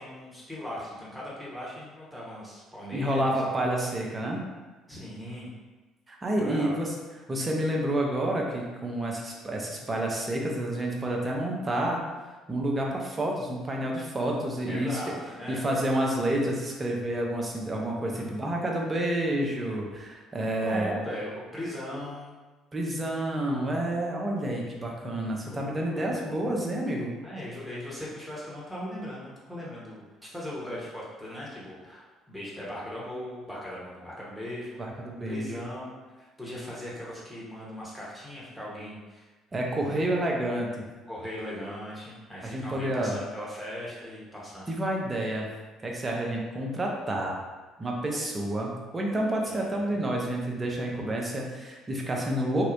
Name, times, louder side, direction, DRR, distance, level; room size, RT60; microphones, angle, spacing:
voice 1, 0.0-3.3 4.9-5.5 6.4-6.7 14.7-15.7 18.1-18.7 20.4-22.3 25.5-26.6 27.2-39.3 39.7-40.1 41.1-44.7 49.5-50.1, left 1 dB, 5° right, -6 dB, 1.0 m, -39 dB
voice 2, 2.9-4.4 6.1-6.9 7.3-12.0 12.5-15.0 15.5-20.9 22.7-27.2 34.8-35.5 39.5-40.7 42.4-43.2 44.7-45.5 45.8-47.4 47.8-52.6, right 1 dB, 30° right, -1 dB, 0.6 m, -29 dB
2.8 x 2.0 x 2.5 m, 1.2 s
hypercardioid pair, 55°, 0 cm